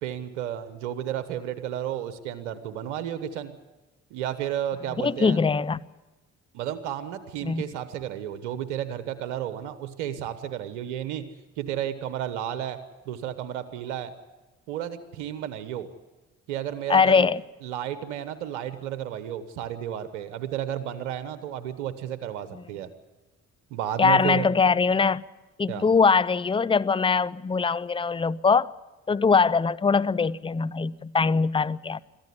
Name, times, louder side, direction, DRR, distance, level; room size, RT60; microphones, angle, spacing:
voice 1, 0.0-3.6 4.1-5.4 6.5-11.3 11.6-12.8 13.1-14.1 14.7-15.9 16.5-17.3 17.6-22.9 23.7-24.5 25.7-25.8, right 10 dB, 85° right, 1.2 m, -32 dB
voice 2, 5.0-5.9 7.4-7.6 16.9-17.4 24.0-25.2 25.6-28.7 29.1-32.0, left 5 dB, 15° left, 0.6 m, -22 dB
22.0 x 14.5 x 10.0 m
hypercardioid pair, 50°, 35 cm